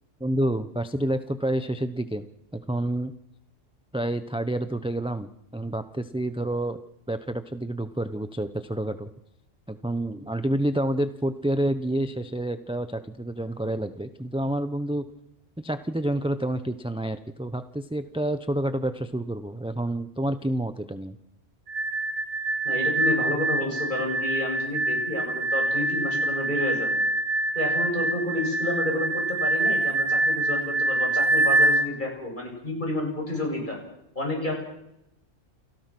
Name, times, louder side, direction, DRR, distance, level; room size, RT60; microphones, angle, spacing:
voice 1, 0.2-2.2 2.5-3.1 3.9-6.8 7.1-9.1 9.7-15.0 15.6-21.2, right 1 dB, 5° right, 10 dB, 0.8 m, -28 dB
sound 1, 21.7-31.9, right 2 dB, 70° right, 1.8 m, -25 dB
voice 2, 22.6-27.0 27.5-33.8 34.1-34.5, left 1 dB, 40° left, 1 dB, 7.7 m, -30 dB
29.5 x 17.5 x 6.1 m, 0.83 s
omnidirectional pair, 1.3 m